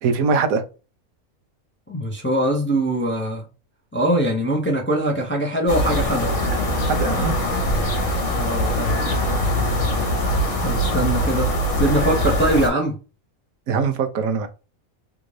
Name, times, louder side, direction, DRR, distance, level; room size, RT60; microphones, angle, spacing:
voice 1, 0.0-0.6 6.9-7.3 13.7-14.5, right 5 dB, 90° right, 1.1 m, -21 dB
voice 2, 1.9-3.5 3.9-6.4 8.3-9.3 10.6-12.9, right 1 dB, 15° left, 0.5 m, -22 dB
sound 1, 5.7-12.7, equal, 60° left, 1.3 m, -22 dB
3.5 x 2.6 x 3.1 m
omnidirectional pair, 1.4 m